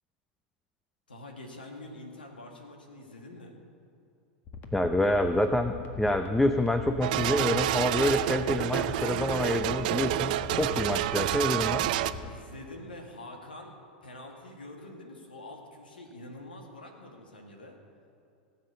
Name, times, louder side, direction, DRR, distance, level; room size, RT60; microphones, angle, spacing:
voice 1, 1.1-3.6 12.2-17.8, left 1 dB, 85° left, 2 dB, 2.0 m, -46 dB
sound 1, 4.5-12.3, left 4 dB, 35° left, 1.7 m, -41 dB
voice 2, 4.7-11.9, left 1 dB, 5° left, 8 dB, 0.6 m, -27 dB
sound 2, 7.0-12.1, right 14 dB, 60° right, 0.5 m, -29 dB
17.5 x 7.9 x 6.9 m, 2.6 s
hypercardioid pair, 95°, 5 cm